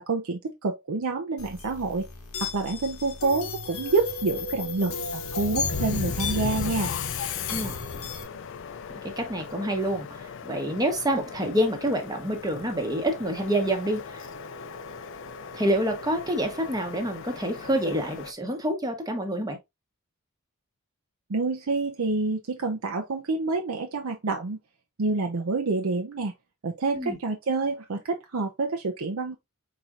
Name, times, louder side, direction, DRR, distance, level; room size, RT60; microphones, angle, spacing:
voice 1, 0.0-2.1 2.4-6.9 21.3-24.6 25.0-26.3 26.6-29.4, right 3 dB, 70° right, 0.6 m, -28 dB
sound 1, 1.4-8.2, left 4 dB, 80° left, 1.0 m, -35 dB
Subway metro underground, 4.8-18.3, left 6 dB, 60° left, 0.5 m, -36 dB
voice 2, 8.9-10.1 10.4-14.3 15.5-19.6 26.9-27.2, right 1 dB, 20° right, 1.0 m, -27 dB
4.7 x 4.3 x 2.5 m
head